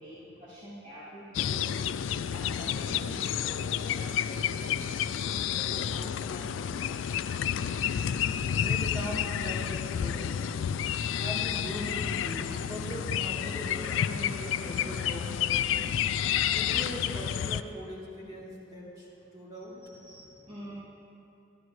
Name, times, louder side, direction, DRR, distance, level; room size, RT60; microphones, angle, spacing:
voice 1, 0.0-1.8 2.3-4.9 5.3-7.3 13.7-13.8 14.1-15.1 15.5-16.4 18.3-18.4 19.8-20.8, equal, 40° right, -12 dB, 2.3 m, -47 dB
sound 1, 1.3-17.6, left 9 dB, 70° left, 0.3 m, -30 dB
voice 2, 8.6-10.5 11.1-15.8 16.5-19.1 19.3-19.7, equal, 20° right, -8 dB, 3.0 m, -40 dB
13.5 x 13.0 x 3.1 m, 2.7 s
head